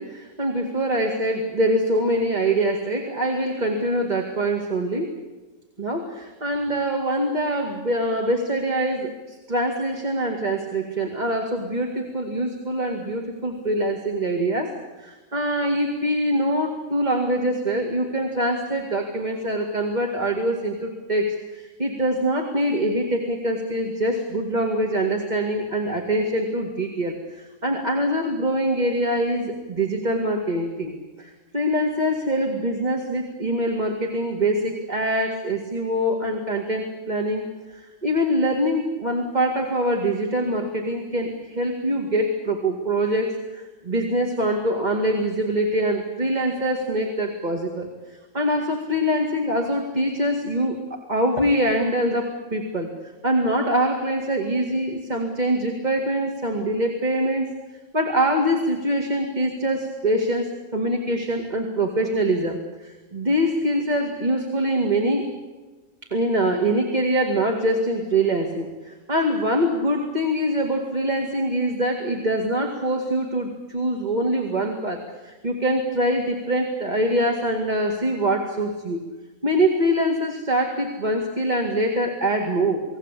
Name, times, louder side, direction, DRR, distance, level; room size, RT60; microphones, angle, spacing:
voice 1, 0.0-5.1 5.8-37.4 37.7-47.9 48.3-52.9 53.2-57.5 57.9-65.2 66.1-79.0 79.4-82.8, right 1 dB, 30° right, 2 dB, 2.3 m, -24 dB
29.5 x 19.0 x 8.4 m, 1.3 s
omnidirectional pair, 1.5 m